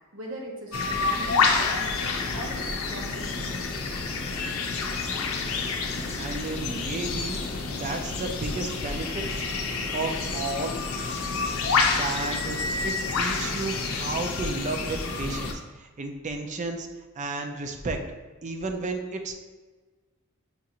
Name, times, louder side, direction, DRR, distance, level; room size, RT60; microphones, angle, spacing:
voice 1, 0.1-3.7, right 1 dB, 70° right, -1 dB, 0.8 m, -40 dB
sound 1, 0.7-15.5, left 4 dB, 90° left, 0.5 m, -28 dB
sound 2, 4.7-13.5, left 5 dB, 30° left, 0.4 m, -46 dB
voice 2, 6.2-7.4 7.8-9.5 9.9-10.8 11.9-12.6 12.8-16.9 17.2-18.0 18.4-19.3, right 3 dB, 35° right, 5 dB, 0.4 m, -32 dB
5.8 x 2.5 x 2.8 m, 1.3 s
head